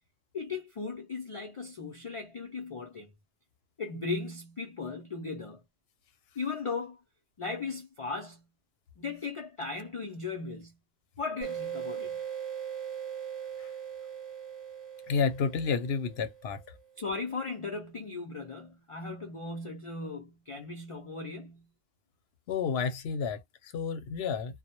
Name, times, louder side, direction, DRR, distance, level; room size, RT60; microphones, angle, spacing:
voice 1, 0.3-3.1 3.8-5.6 6.4-7.0 7.4-8.4 9.0-10.7 11.2-12.2 17.0-21.6, left 4 dB, 50° left, 0.4 m, -37 dB
sound 1, 11.4-16.7, right 9 dB, 20° right, 0.9 m, -40 dB
voice 2, 15.1-16.6 22.5-24.6, left 5 dB, 80° left, 0.8 m, -31 dB
2.1 x 2.1 x 2.9 m
omnidirectional pair, 1.0 m